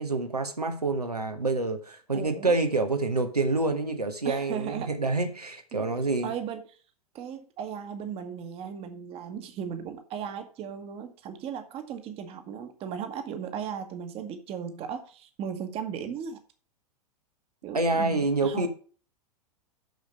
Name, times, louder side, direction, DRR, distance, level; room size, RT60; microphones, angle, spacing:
voice 1, 0.0-6.3 17.7-18.7, right 3 dB, 85° right, 1.3 m, -27 dB
voice 2, 2.1-2.6 4.2-4.9 5.7-5.9 6.2-6.7 7.1-16.4 17.6-18.7, right 8 dB, 30° right, 1.4 m, -36 dB
6.7 x 6.5 x 6.8 m
figure-of-eight pair, 95°, 19 cm